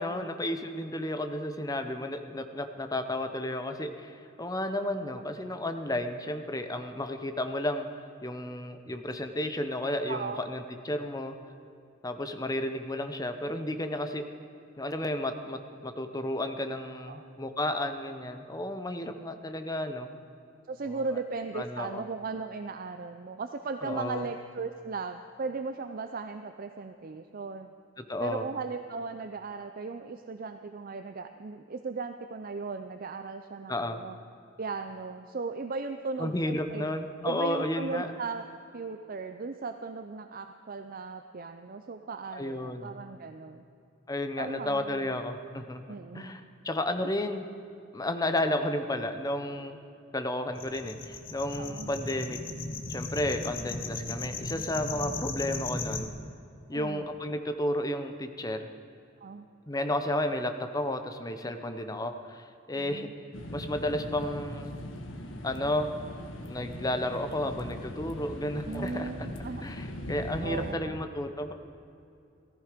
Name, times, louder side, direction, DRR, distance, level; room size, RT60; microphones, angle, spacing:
voice 1, 0.0-11.3 12.0-14.2 14.8-20.1 20.9-21.0 21.5-22.0 23.8-24.3 28.1-28.5 33.7-34.0 36.2-38.1 42.3-43.0 44.1-47.4 47.9-49.8 50.1-52.4 52.9-56.1 56.7-58.7 59.7-63.1 63.5-64.7 65.4-65.9 66.5-69.1 69.6-71.5, left 1 dB, 20° left, 7 dB, 0.9 m, -32 dB
voice 2, 10.1-10.4 17.1-17.3 20.7-27.7 28.2-34.2 34.6-36.9 37.2-38.4 38.7-43.6 44.4-45.1 45.9-46.4 47.0-47.1 51.6-51.9 56.7-57.1 59.2-59.5 62.8-63.1 68.7-69.6 70.4-71.0, right 4 dB, 45° right, 7 dB, 0.5 m, -37 dB
sound 1, 50.5-56.1, left 3 dB, 45° left, 1.3 m, -36 dB
sound 2, 63.3-70.7, left 1 dB, 75° left, 1.4 m, -40 dB
17.0 x 14.5 x 5.1 m, 2.6 s
head